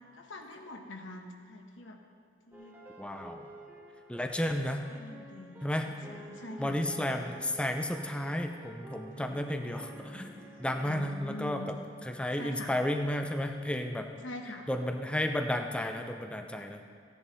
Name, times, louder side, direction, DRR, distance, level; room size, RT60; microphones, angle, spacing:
voice 1, 0.0-2.0 2.5-2.8 4.9-7.3 9.1-9.5 10.8-11.7 12.4-12.8 14.2-14.7, left 2 dB, 85° left, 3 dB, 1.3 m, -45 dB
sound 1, 2.5-11.1, right 1 dB, 10° right, 1.5 m, -51 dB
voice 2, 3.0-3.5 4.1-4.8 5.6-5.9 6.6-10.3 10.6-11.7 12.1-14.1 14.7-17.0, left 1 dB, 5° left, 5 dB, 0.6 m, -32 dB
15.0 x 10.5 x 4.1 m, 2.1 s
head